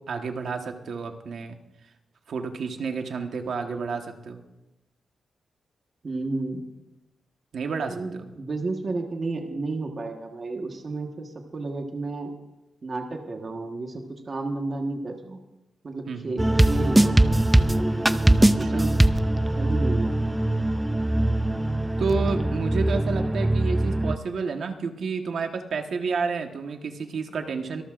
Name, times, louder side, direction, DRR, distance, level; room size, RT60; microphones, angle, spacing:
voice 1, 0.0-1.5 2.3-4.4 7.5-8.3 16.1-16.4 18.4-19.0 22.0-27.8, right 5 dB, 60° right, 5 dB, 1.3 m, -30 dB
voice 2, 3.5-3.9 6.0-6.6 7.9-12.3 12.8-15.4 15.8-17.8 18.5-19.0 19.5-20.3, right 3 dB, 35° right, 2 dB, 1.3 m, -32 dB
sound 1, 16.4-24.2, right 1 dB, 10° right, 0.4 m, -21 dB
24.5 x 13.5 x 2.5 m, 0.97 s
wide cardioid pair, 160°, 0 cm